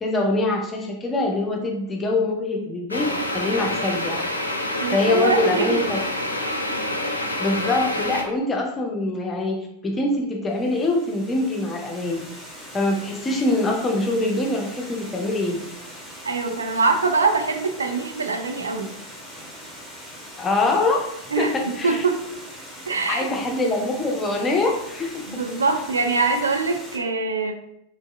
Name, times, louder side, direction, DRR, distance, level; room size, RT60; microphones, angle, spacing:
voice 1, 0.0-4.2 4.9-6.0 7.4-12.2 12.7-15.6 20.4-22.0 23.1-25.2, left 2 dB, 20° left, 0 dB, 0.4 m, -24 dB
sound 1, 2.9-8.2, left 1 dB, 85° left, 0.4 m, -27 dB
voice 2, 4.8-5.9 16.2-18.9 21.3-21.5 21.8-22.2 22.9-23.3 25.3-27.5, right 4 dB, 75° right, 6 dB, 0.3 m, -23 dB
Water, 10.5-27.0, equal, ahead, 0.8 m, -41 dB
3.0 x 2.6 x 2.3 m, 0.79 s
figure-of-eight pair, 90°, 0 cm